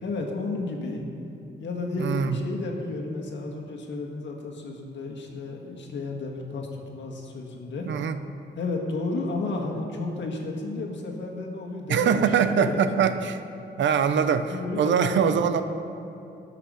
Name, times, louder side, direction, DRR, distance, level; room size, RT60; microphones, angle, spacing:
voice 1, 0.0-1.1 1.6-7.9 8.6-13.0 14.2-15.6, left 3 dB, 70° left, 1 dB, 1.8 m, -32 dB
voice 2, 2.0-2.4 7.9-8.2 11.9-13.4 13.8-15.6, right 7 dB, 75° right, 10 dB, 0.7 m, -23 dB
17.5 x 5.9 x 6.4 m, 2.7 s
wide cardioid pair, 145°, 20 cm